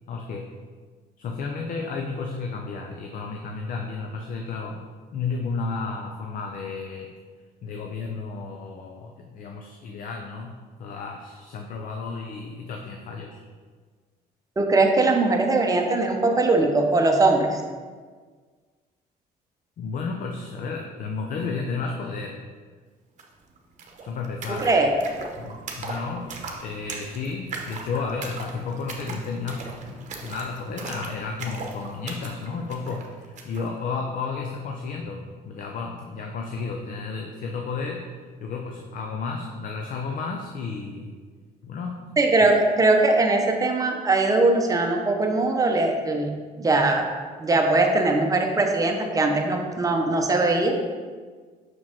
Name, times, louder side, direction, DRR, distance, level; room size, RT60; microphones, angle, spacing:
voice 1, 0.1-0.5 1.2-4.9 5.1-7.1 7.6-13.4 19.8-22.4 24.0-24.7 25.4-38.1 38.4-41.2 41.6-42.0, left 4 dB, 55° left, 2 dB, 0.6 m, -32 dB
voice 2, 14.6-17.6 24.6-24.9 42.2-46.3 46.6-47.0 47.4-50.7, right 2 dB, 20° right, 2 dB, 0.8 m, -21 dB
sound 1, 23.2-23.3 23.5-33.7, right 4 dB, 45° right, 1.0 m, -39 dB
6.2 x 4.7 x 3.6 m, 1.5 s
cardioid pair, 110°, 17 cm